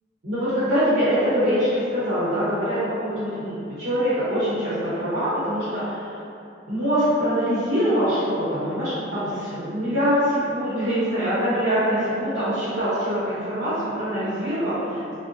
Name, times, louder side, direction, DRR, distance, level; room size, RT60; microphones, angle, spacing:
voice 1, 0.2-6.2 6.7-15.1, equal, 75° right, -14 dB, 0.8 m, -24 dB
2.6 x 2.1 x 2.5 m, 2.6 s
head